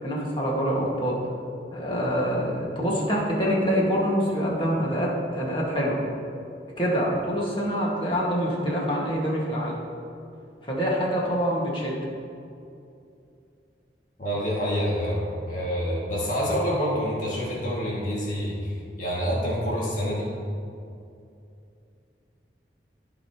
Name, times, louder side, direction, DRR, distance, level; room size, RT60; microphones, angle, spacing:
voice 1, 0.0-1.2 1.7-6.0 6.8-9.8 10.6-12.0, equal, 30° left, -4 dB, 1.7 m, -25 dB
voice 2, 14.2-20.3, equal, 45° left, -6 dB, 2.0 m, -27 dB
15.0 x 5.2 x 2.9 m, 2.5 s
head